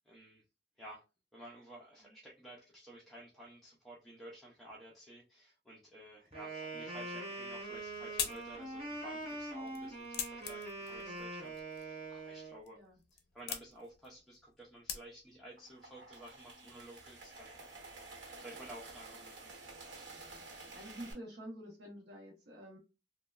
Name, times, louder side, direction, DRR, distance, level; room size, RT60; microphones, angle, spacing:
voice 1, 0.1-0.4 0.8-1.0 1.3-12.8 13.1-17.8 18.2-19.6, right 1 dB, ahead, -5 dB, 0.5 m, -53 dB
Wind instrument woodwind instrument, 6.3-12.6, right 2 dB, 35° right, 1.3 m, -43 dB
sound 1, 7.5-15.5, left 8 dB, 60° left, 0.5 m, -45 dB
sound 2, 15.5-21.1, right 3 dB, 85° right, 1.0 m, -51 dB
voice 2, 20.3-22.8, equal, 65° right, -3 dB, 0.8 m, -49 dB
3.0 x 2.1 x 2.3 m, 0.28 s
head